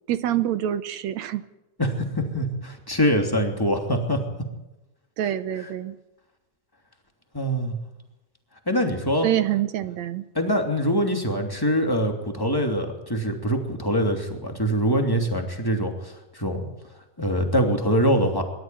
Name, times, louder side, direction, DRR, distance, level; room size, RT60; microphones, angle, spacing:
voice 1, 0.1-1.4 5.2-6.0 9.2-10.3, right 11 dB, 70° right, 12 dB, 1.9 m, -26 dB
voice 2, 1.8-4.2 5.6-5.7 7.3-7.8 8.7-9.3 10.3-16.7 17.2-18.4, equal, 5° left, 3 dB, 2.5 m, -24 dB
24.0 x 13.0 x 9.3 m, 1.0 s
omnidirectional pair, 3.7 m